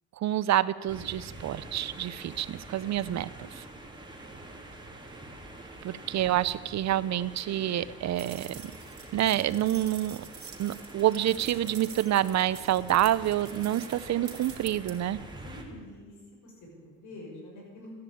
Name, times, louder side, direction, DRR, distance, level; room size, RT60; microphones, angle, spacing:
voice 1, 0.2-3.3 5.8-8.6 9.1-10.2 10.6-15.2, right 12 dB, 65° right, 17 dB, 0.7 m, -27 dB
sound 1, 0.9-15.6, right 2 dB, 15° right, 3.1 m, -46 dB
sound 2, 8.2-14.9, right 7 dB, 45° right, 3.0 m, -47 dB
voice 2, 15.4-17.9, left 1 dB, 75° left, -3 dB, 6.5 m, -47 dB
15.5 x 10.5 x 8.6 m, 1.5 s
cardioid pair, 90°, 30 cm